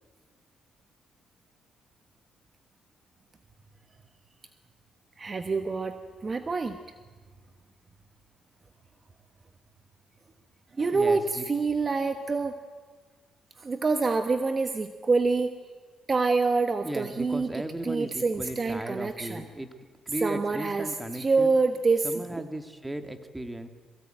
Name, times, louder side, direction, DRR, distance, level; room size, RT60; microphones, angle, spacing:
voice 1, 5.2-6.0 6.2-6.8 10.8-12.6 13.6-15.5 16.1-17.5 17.8-19.4 20.2-22.1, right 4 dB, 35° right, 8 dB, 1.2 m, -26 dB
voice 2, 10.9-11.4 16.8-19.7 20.1-21.5 22.0-23.7, right 1 dB, 10° right, 8 dB, 2.0 m, -36 dB
22.5 x 17.0 x 9.1 m, 1.5 s
cardioid pair, 90°, 0 cm